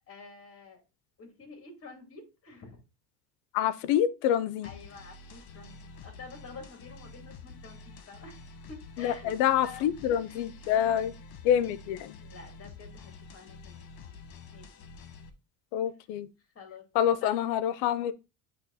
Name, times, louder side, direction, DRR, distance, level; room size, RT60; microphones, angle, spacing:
voice 1, 0.1-0.8 1.2-2.8 4.6-8.4 8.7-10.8 12.2-14.0 14.5-14.8 16.4-17.4, left 4 dB, 35° left, 2.6 m, -49 dB
voice 2, 3.5-4.7 9.0-11.1 11.4-12.2 15.7-16.3 16.9-18.1, left 10 dB, 85° left, 0.7 m, -27 dB
sound 1, 4.6-15.3, left 4 dB, 60° left, 1.4 m, -48 dB
8.4 x 3.0 x 4.0 m
cardioid pair, 110°, 40 cm